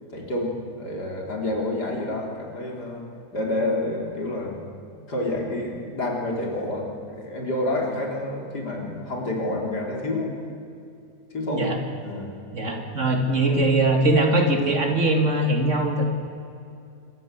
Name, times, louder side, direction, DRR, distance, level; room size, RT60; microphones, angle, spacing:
voice 1, 0.1-3.0 3.3-4.6 5.1-10.3 11.3-11.7 12.0-12.3 13.5-13.6, left 1 dB, 80° left, 0 dB, 4.3 m, -28 dB
voice 2, 12.5-16.0, right 2 dB, 45° right, 3 dB, 2.9 m, -21 dB
25.5 x 15.0 x 8.3 m, 2.6 s
omnidirectional pair, 1.7 m